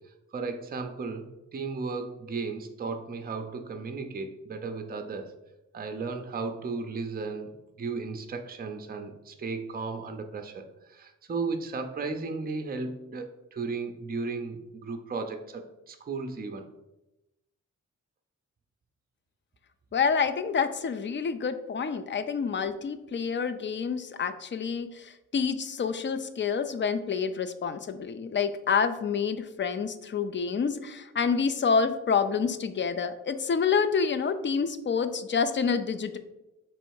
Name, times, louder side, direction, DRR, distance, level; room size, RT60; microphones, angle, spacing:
voice 1, 0.3-1.3 1.5-5.3 5.7-16.7, right 4 dB, 30° right, 5 dB, 0.5 m, -35 dB
voice 2, 19.9-36.2, left 6 dB, 40° left, 11 dB, 0.4 m, -28 dB
3.3 x 3.1 x 4.7 m, 0.96 s
cardioid pair, 70°, 31 cm